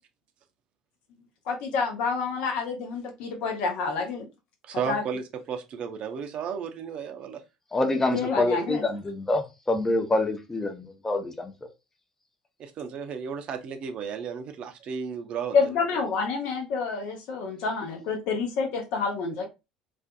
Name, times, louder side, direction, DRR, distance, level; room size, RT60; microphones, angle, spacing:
voice 1, 1.5-4.3 4.9-5.0 8.1-9.0 15.5-19.5, left 5 dB, 60° left, 0.8 m, -28 dB
voice 2, 4.7-7.4 12.6-15.6, right 7 dB, 50° right, 0.5 m, -33 dB
voice 3, 7.7-11.5, left 2 dB, 15° left, 0.7 m, -26 dB
2.5 x 2.4 x 2.3 m
hypercardioid pair, 65°, 2 cm